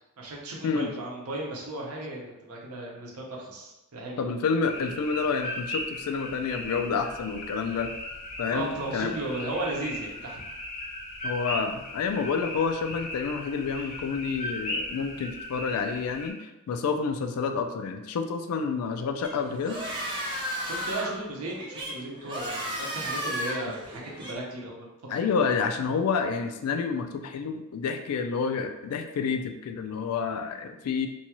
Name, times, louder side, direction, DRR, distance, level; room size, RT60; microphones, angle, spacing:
voice 1, 0.2-4.2 8.5-10.4 20.6-24.9, right 2 dB, 70° right, -2 dB, 0.7 m, -35 dB
voice 2, 4.2-7.9 8.4-9.2 11.2-19.8 25.1-31.1, left 5 dB, 75° left, 6 dB, 0.3 m, -29 dB
sound 1, 4.7-16.3, left 1 dB, 30° left, 0.6 m, -37 dB
sound 2, 19.2-24.3, equal, 20° right, 0.5 m, -34 dB
2.6 x 2.3 x 2.9 m, 0.96 s
head